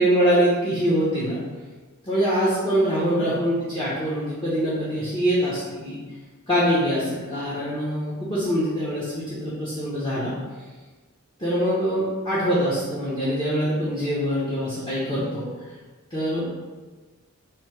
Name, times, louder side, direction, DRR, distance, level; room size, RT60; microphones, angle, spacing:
voice 1, 0.0-1.4 2.1-6.0 6.5-10.3 11.4-15.4 16.1-16.5, equal, 20° left, -10 dB, 0.8 m, -24 dB
3.1 x 2.7 x 4.5 m, 1.3 s
head